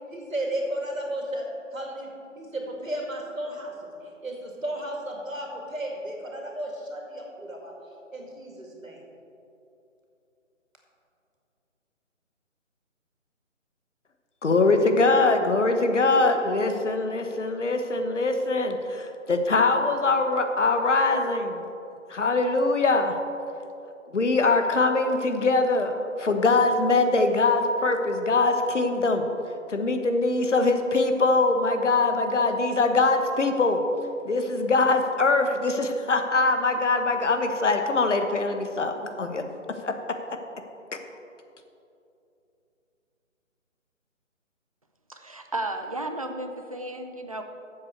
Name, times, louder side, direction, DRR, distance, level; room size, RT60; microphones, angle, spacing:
voice 1, 0.1-1.4 1.7-2.1 2.4-3.9 4.2-7.7 8.1-9.0, right 1 dB, 85° right, 0 dB, 2.5 m, -33 dB
voice 2, 14.4-21.6 22.1-23.2 24.1-29.3 29.7-33.8 34.2-39.4 39.8-39.9, left 3 dB, 65° left, 6 dB, 1.3 m, -23 dB
voice 3, 45.1-47.4, right 2 dB, 30° right, 5 dB, 0.6 m, -33 dB
14.5 x 7.4 x 4.6 m, 2.8 s
figure-of-eight pair, 155°, 39 cm